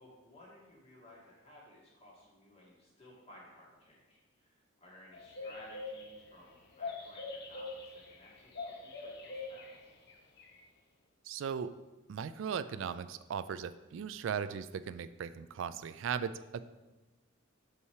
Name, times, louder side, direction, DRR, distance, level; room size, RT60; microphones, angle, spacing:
voice 1, 0.0-10.1, left 1 dB, 30° left, -4 dB, 1.9 m, -57 dB
sound 1, 5.1-10.1 10.4-10.6, left 3 dB, 55° left, 0.9 m, -44 dB
voice 2, 11.3-11.7 12.1-16.6, right 7 dB, 65° right, 14 dB, 0.3 m, -38 dB
5.6 x 4.8 x 5.7 m, 1.1 s
head